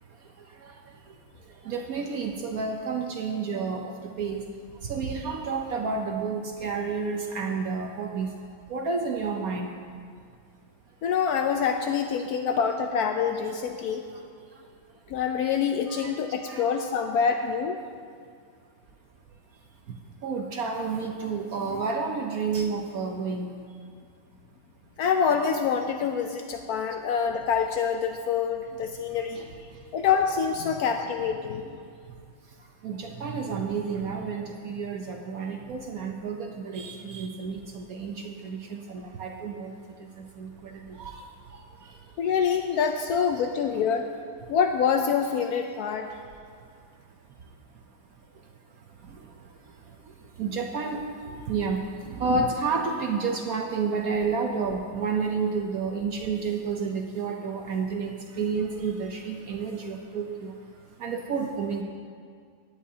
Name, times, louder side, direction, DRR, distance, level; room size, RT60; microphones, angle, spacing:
voice 1, 1.6-4.4 4.8-8.3 8.7-9.7 15.9-16.1 16.4-16.7 17.3-17.4 20.2-23.5 29.4-29.5 32.8-39.7 40.4-41.2 50.4-51.0 51.5-51.8 52.1-60.5 61.0-61.8, right 5 dB, 65° right, 3 dB, 0.9 m, -30 dB
voice 2, 11.0-14.0 15.1-17.8 25.0-29.5 29.9-31.6 42.2-44.1 44.5-46.1, left 6 dB, 85° left, 5 dB, 0.8 m, -26 dB
17.0 x 10.0 x 2.8 m, 2.1 s
omnidirectional pair, 2.2 m